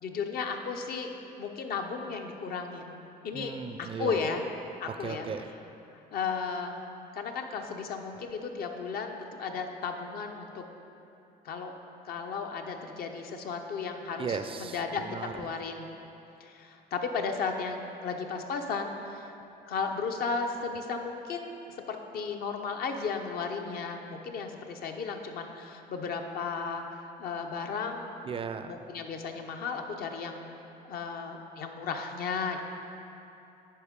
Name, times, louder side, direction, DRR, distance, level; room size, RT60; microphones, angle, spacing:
voice 1, 0.0-1.1 1.4-2.9 3.2-3.5 3.8-4.4 4.8-5.3 6.1-6.8 7.1-10.6 11.4-11.7 12.0-15.0 15.3-15.9 16.4-19.3 19.7-28.0 28.7-30.5 30.8-32.6, left 5 dB, 65° left, 4 dB, 0.7 m, -34 dB
voice 2, 3.3-4.3 5.0-5.5 14.2-15.3 28.3-28.8, right 6 dB, 35° right, 9 dB, 0.4 m, -36 dB
10.0 x 4.5 x 5.1 m, 2.8 s
cardioid pair, 110°, 17 cm